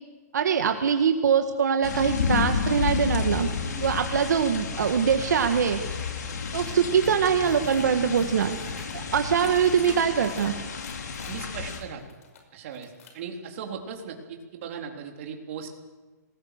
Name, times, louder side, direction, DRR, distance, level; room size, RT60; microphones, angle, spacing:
voice 1, 0.3-3.5 3.8-5.8 6.5-8.6 8.9-10.5, right 7 dB, 80° right, 6 dB, 1.8 m, -23 dB
sound 1, 1.8-11.8, left 6 dB, 75° left, 4.4 m, -31 dB
voice 2, 3.6-4.1 11.3-12.0 12.5-15.7, right 6 dB, 45° right, 2 dB, 3.7 m, -38 dB
sound 2, 6.6-6.7 7.0-7.8 8.1-8.9 9.3-10.5 10.8-12.4 12.7-13.2, left 6 dB, 55° left, 5.5 m, -48 dB
26.5 x 19.5 x 6.7 m, 1.3 s
hypercardioid pair, 160°, 9 cm